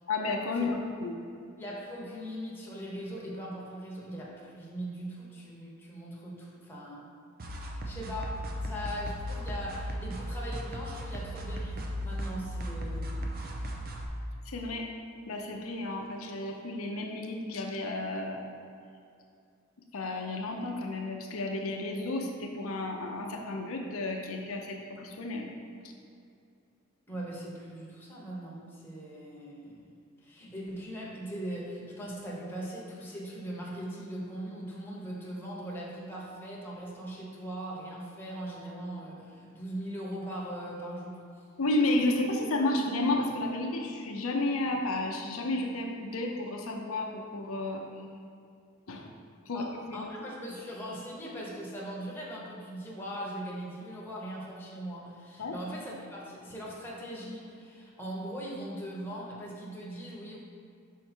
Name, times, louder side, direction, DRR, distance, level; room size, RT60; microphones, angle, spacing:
voice 1, 0.1-1.1 14.5-14.9 15.3-18.6 19.9-25.5 41.6-47.8 48.9-49.1 49.5-50.1 55.4-55.6, left 2 dB, 85° left, 2 dB, 0.6 m, -32 dB
voice 2, 1.6-7.0 7.8-13.4 27.1-29.9 30.2-41.4 49.5-49.7 49.9-60.4, equal, 10° left, -5 dB, 1.2 m, -40 dB
sound 1, 7.4-14.1, equal, 45° right, 0.7 m, -36 dB
5.7 x 4.6 x 4.4 m, 2.4 s
head